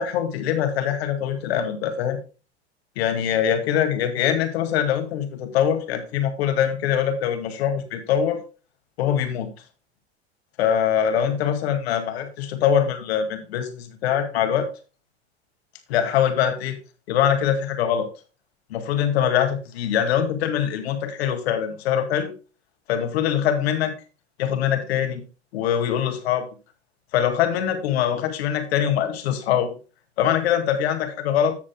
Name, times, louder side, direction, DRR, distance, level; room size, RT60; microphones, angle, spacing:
voice 1, 0.0-2.2 3.0-8.4 9.0-9.5 10.6-14.7 15.9-16.8 17.1-18.1 18.7-22.3 22.9-24.0 24.4-25.2 25.5-26.5 27.1-29.8 30.2-31.5, left 9 dB, 65° left, 7 dB, 2.1 m, -23 dB
14.0 x 7.4 x 2.2 m, 0.33 s
hypercardioid pair, 90°, 33 cm